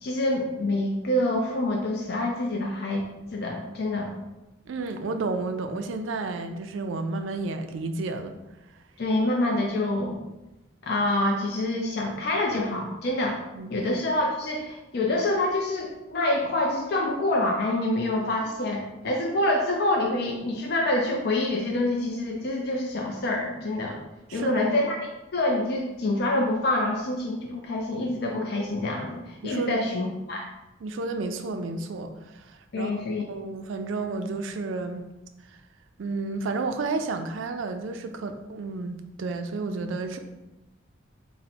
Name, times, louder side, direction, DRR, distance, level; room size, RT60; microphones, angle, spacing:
voice 1, 0.0-3.0 3.3-4.1 9.0-10.2 10.8-13.4 13.7-24.0 24.3-25.0 25.3-30.4 32.7-33.2, left 1 dB, 55° left, 0 dB, 0.4 m, -26 dB
voice 2, 4.7-8.3 13.6-13.7 24.3-24.7 29.4-29.8 30.8-33.0 33.3-35.1 35.5-35.6 36.0-40.2, right 3 dB, 85° right, 7 dB, 0.4 m, -31 dB
4.0 x 2.1 x 4.2 m, 0.99 s
head